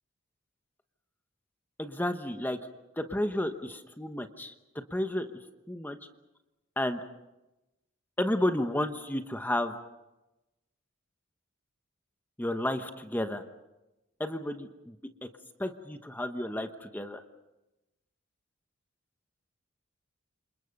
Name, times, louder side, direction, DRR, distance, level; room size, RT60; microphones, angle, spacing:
voice 1, 1.8-2.6 3.0-4.5 4.9-5.3 5.7-6.0 6.8-7.0 8.2-9.7 12.4-13.4 14.2-15.0 15.2-15.3 15.6-17.2, left 1 dB, 10° left, 7 dB, 1.0 m, -31 dB
28.0 x 27.5 x 5.4 m, 0.99 s
head